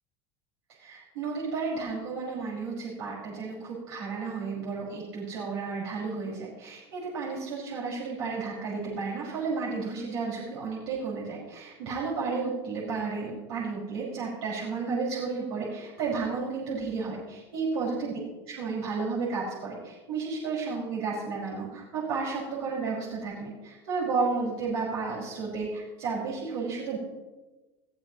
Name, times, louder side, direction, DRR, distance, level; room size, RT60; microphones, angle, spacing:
voice 1, 0.8-18.2 18.5-27.0, right 4 dB, 85° right, -6 dB, 5.4 m, -32 dB
21.0 x 15.0 x 3.0 m, 1.2 s
supercardioid pair, 105°, 13 cm